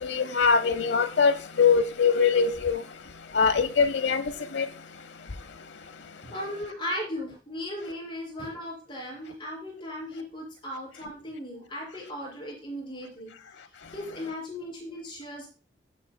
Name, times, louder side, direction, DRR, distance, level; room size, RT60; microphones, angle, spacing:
voice 1, 0.0-2.8 3.3-4.2 4.5-4.6, left 5 dB, 85° left, 0.8 m, -22 dB
voice 2, 6.3-13.3 13.9-15.5, left 1 dB, 30° left, 5.8 m, -37 dB
14.5 x 8.1 x 2.2 m
head